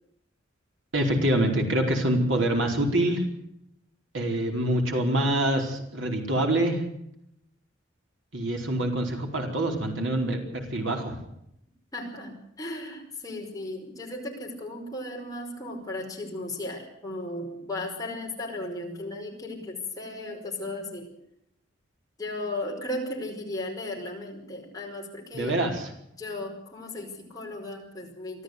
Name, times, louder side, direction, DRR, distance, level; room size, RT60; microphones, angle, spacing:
voice 1, 0.9-3.2 4.1-6.8 8.3-11.2 25.3-25.9, right 1 dB, 80° right, 2 dB, 4.7 m, -25 dB
voice 2, 11.9-21.1 22.2-25.7 26.2-28.4, left 2 dB, 20° left, 0 dB, 5.2 m, -36 dB
24.0 x 14.0 x 8.1 m, 0.77 s
head